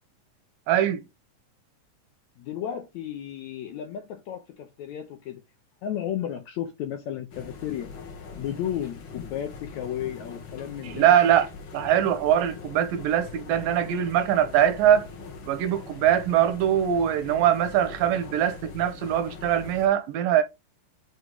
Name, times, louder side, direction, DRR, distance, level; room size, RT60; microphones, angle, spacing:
voice 1, 0.7-1.0 10.9-11.5 11.7-15.1 15.5-20.4, right 10 dB, 80° right, 2.5 m, -22 dB
voice 2, 2.4-5.4 5.8-7.9 8.4-11.1, left 10 dB, 75° left, 1.8 m, -33 dB
sound 1, 7.3-19.9, left 5 dB, 50° left, 1.7 m, -42 dB
8.0 x 3.2 x 3.8 m
omnidirectional pair, 4.0 m